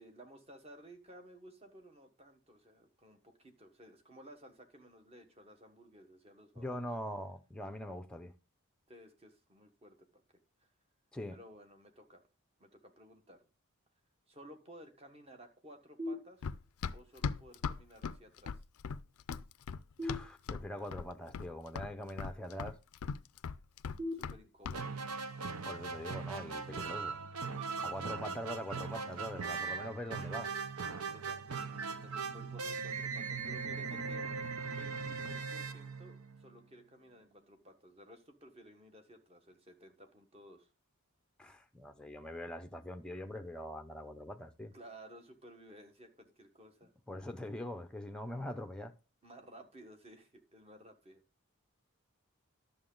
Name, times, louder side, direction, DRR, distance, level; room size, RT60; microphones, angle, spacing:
voice 1, 0.0-6.7 8.9-10.2 10.6-10.7 11.3-12.2 12.6-13.5 14.3-16.5 16.9-18.6 24.1-25.0 31.1-34.2 34.7-40.7 44.7-46.9 49.2-51.2, right 1 dB, 25° right, 1.3 m, -56 dB
voice 2, 6.6-8.3 11.1-11.4 20.0-22.8 25.6-27.2 27.8-30.5 41.4-44.7 47.1-48.9, left 1 dB, 5° left, 0.6 m, -43 dB
sound 1, 16.0-16.9 20.0-21.0 24.0-25.0, left 1 dB, 55° right, 5.3 m, -43 dB
Run, 16.4-20.7 20.9-21.5 21.8-24.4 24.6-24.8, left 5 dB, 80° left, 0.4 m, -39 dB
sound 2, 24.7-36.6, right 5 dB, 75° right, 0.8 m, -39 dB
11.0 x 6.9 x 3.8 m
head